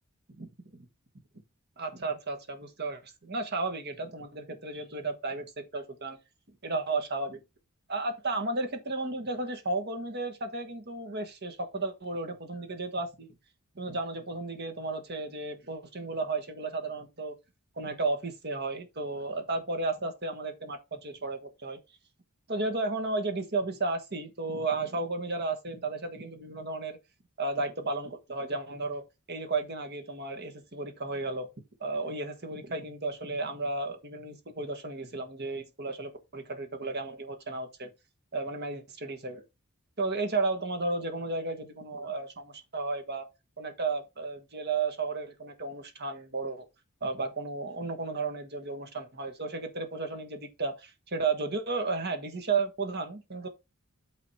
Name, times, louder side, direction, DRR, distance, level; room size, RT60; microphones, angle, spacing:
voice 1, 0.3-0.8 1.8-5.5 5.7-6.2 6.6-7.4 7.9-13.3 13.7-17.4 17.8-21.8 22.5-27.0 27.4-29.0 29.3-31.5 31.8-37.9 38.3-39.4 40.0-43.3 43.6-46.6 47.0-53.5, right 3 dB, 50° right, 1.6 m, -33 dB
8.8 x 4.0 x 4.3 m
head